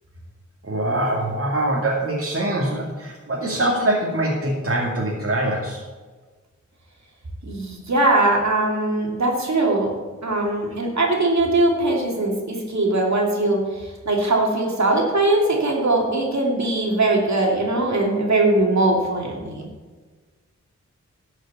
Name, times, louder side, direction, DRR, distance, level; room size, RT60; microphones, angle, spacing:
voice 1, 0.6-5.8, right 1 dB, 45° right, -3 dB, 2.1 m, -23 dB
voice 2, 7.4-9.9 10.2-19.7, right 2 dB, 65° right, -1 dB, 2.8 m, -21 dB
12.0 x 6.3 x 7.1 m, 1.4 s
wide cardioid pair, 75°, 30 cm